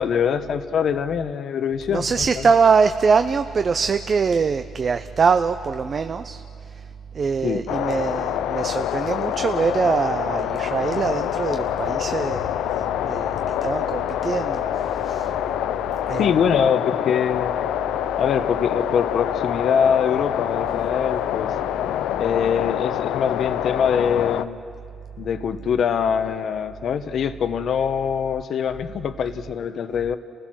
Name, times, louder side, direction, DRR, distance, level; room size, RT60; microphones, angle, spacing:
voice 1, 0.0-2.5 7.4-7.6 16.2-17.5 18.2-21.5 22.2-24.6 25.2-30.2, left 7 dB, 65° left, 10 dB, 1.0 m, -23 dB
voice 2, 1.9-6.4 6.8-6.9 7.1-12.5 13.1-15.3 16.1-16.3, right 5 dB, 45° right, 9 dB, 0.6 m, -23 dB
sound 1, 7.7-24.4, left 11 dB, 85° left, 0.5 m, -26 dB
29.5 x 16.0 x 6.3 m, 2.5 s
cardioid pair, 90°, 0 cm